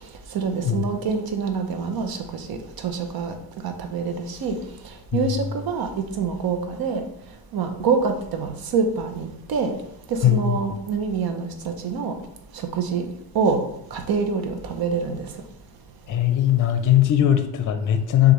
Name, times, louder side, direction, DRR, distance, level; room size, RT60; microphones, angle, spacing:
voice 1, 0.3-2.6 2.8-3.3 3.6-4.6 5.1-5.9 6.2-7.0 7.5-9.7 10.1-11.5 11.8-12.1 12.7-13.1 13.3-13.6 13.9-15.2, right 5 dB, 60° right, 6 dB, 0.8 m, -25 dB
voice 2, 10.2-10.6 16.1-18.3, left 11 dB, 50° left, 8 dB, 0.5 m, -19 dB
6.4 x 2.5 x 3.1 m, 0.78 s
cardioid pair, 120°, 41 cm